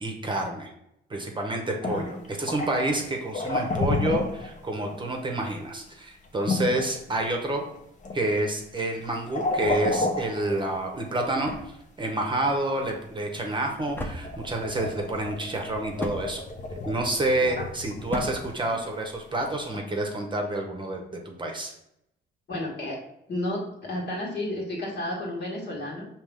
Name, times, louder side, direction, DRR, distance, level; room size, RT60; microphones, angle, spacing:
voice 1, 0.0-0.7 1.1-7.6 8.1-11.5 12.0-16.4 16.9-21.7, right 1 dB, 25° right, 2 dB, 0.8 m, -28 dB
sound 1, 1.8-5.0 5.4-5.6 6.5-7.7 8.0-8.4 8.7-11.1 12.5-12.9 13.8-13.9 14.2-18.8 19.7-19.8, left 2 dB, 40° left, 0.8 m, -31 dB
sound 2, 11.4-19.4, left 1 dB, 10° left, 0.7 m, -40 dB
voice 2, 22.5-23.0 23.3-26.0, left 1 dB, 60° left, -2 dB, 1.7 m, -32 dB
5.1 x 2.9 x 3.5 m, 0.80 s
cardioid pair, 90°, 20 cm